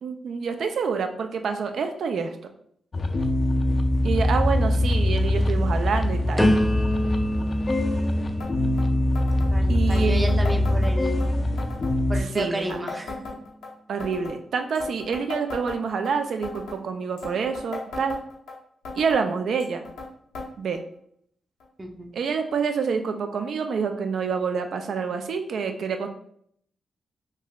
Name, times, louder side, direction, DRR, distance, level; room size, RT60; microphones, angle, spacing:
voice 1, 0.0-2.3 4.0-6.4 9.7-10.4 12.1-12.8 13.9-18.2 19.0-19.8 20.6-20.8 22.1-26.1, right 5 dB, 70° right, 6 dB, 0.4 m, -27 dB
sound 1, 2.9-12.2, left 1 dB, 50° left, 0.4 m, -23 dB
sound 2, 6.4-12.2 12.8-13.2, equal, 10° left, 0.7 m, -29 dB
sound 3, 8.4-8.5 8.8-8.9 9.1-9.5 9.9-11.3 11.6-11.9 12.3-13.7 14.0-14.4 14.7-16.1 16.4-16.8 17.2-18.5 18.8-19.2 19.6-20.1 20.3-20.5 20.7-20.8 21.6-21.7 22.5-22.6, left 3 dB, 90° left, 0.7 m, -36 dB
voice 2, 9.5-11.3 12.1-13.2 21.8-22.1, right 1 dB, 30° right, 3 dB, 0.6 m, -32 dB
3.8 x 2.6 x 2.3 m, 0.65 s
hypercardioid pair, 40°, 0 cm